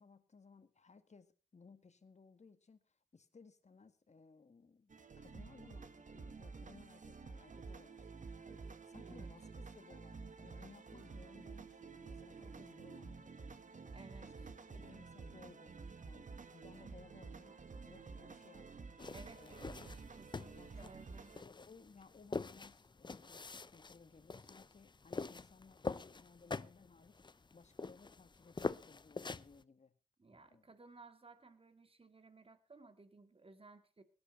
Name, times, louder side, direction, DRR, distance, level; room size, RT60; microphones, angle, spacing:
voice 1, 0.0-13.6 14.2-15.7 16.0-17.6 17.8-18.9 19.4-19.6 20.5-21.0 21.4-30.0 30.5-30.6, left 4 dB, 45° left, 11 dB, 1.7 m, -61 dB
sound 1, 4.9-21.4, right 4 dB, 55° right, 1.4 m, -51 dB
voice 2, 13.9-14.3 19.1-21.3 30.2-34.0, right 3 dB, 35° right, 10 dB, 2.1 m, -58 dB
sound 2, 19.0-29.6, left 4 dB, 30° left, 0.6 m, -45 dB
17.5 x 11.5 x 4.2 m, 0.37 s
cardioid pair, 60°, 16 cm